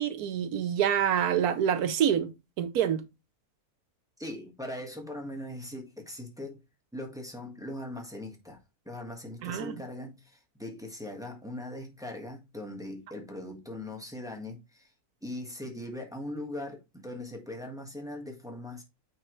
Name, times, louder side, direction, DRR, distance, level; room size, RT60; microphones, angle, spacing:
voice 1, 0.0-2.3 2.6-3.0 9.4-9.8, right 9 dB, 85° right, 1.3 m, -27 dB
voice 2, 4.2-6.6 6.9-8.6 8.8-14.9 15.2-18.8, left 1 dB, ahead, 1.4 m, -40 dB
8.8 x 4.3 x 3.1 m
omnidirectional pair, 1.6 m